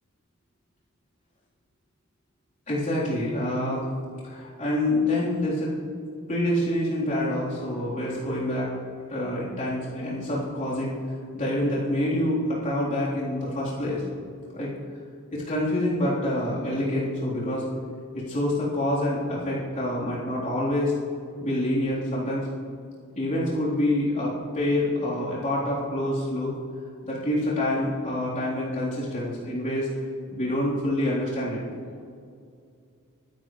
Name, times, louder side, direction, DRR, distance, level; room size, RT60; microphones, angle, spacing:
voice 1, 2.7-3.9 4.2-5.8 6.3-8.7 9.1-11.0 11.3-14.0 14.5-14.7 15.3-17.7 18.1-20.9 21.4-22.5 23.2-26.6 27.0-29.9 30.3-31.6, left 1 dB, 35° left, -8 dB, 3.8 m, -26 dB
23.0 x 10.5 x 3.2 m, 2.3 s
head